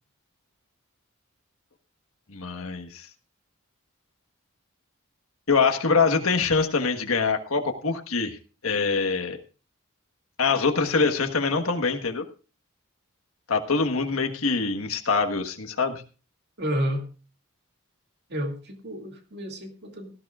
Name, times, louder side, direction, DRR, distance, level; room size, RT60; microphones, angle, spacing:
voice 1, 2.3-3.1 5.5-8.4 8.6-9.4 10.4-12.2 13.5-16.0, left 4 dB, 80° left, 5 dB, 1.4 m, -24 dB
voice 2, 16.6-17.0 18.3-20.1, equal, 55° right, 3 dB, 2.4 m, -30 dB
17.5 x 14.5 x 2.4 m, 0.35 s
head